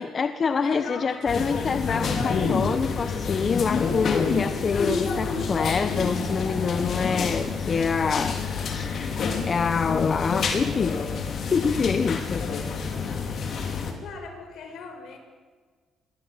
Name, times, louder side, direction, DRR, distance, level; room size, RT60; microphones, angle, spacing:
voice 1, 0.0-8.9 9.4-11.0 11.5-12.5, left 5 dB, 45° left, 9 dB, 1.4 m, -26 dB
voice 2, 0.6-1.6 13.0-15.2, left 4 dB, 75° left, 5 dB, 6.9 m, -40 dB
sound 1, 1.3-13.9, left 5 dB, 60° left, 5.2 m, -28 dB
27.5 x 22.0 x 9.0 m, 1.5 s
cardioid pair, 90°, 0 cm